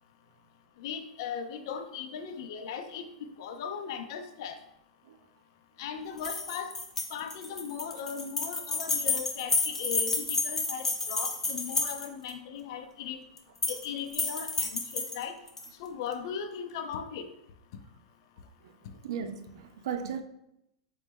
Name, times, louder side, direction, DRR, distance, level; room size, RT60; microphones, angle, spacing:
voice 1, 0.8-3.0 3.4-4.6 5.8-6.7 7.1-13.2 13.7-15.3 15.8-17.2, left 7 dB, 60° left, 0.5 m, -38 dB
sound 1, 6.2-12.3 13.4-13.9 14.1-15.7, left 3 dB, 10° left, 0.6 m, -31 dB
voice 2, 19.0-20.2, right 7 dB, 65° right, 0.4 m, -36 dB
4.1 x 3.1 x 3.4 m
hypercardioid pair, 110°, 3 cm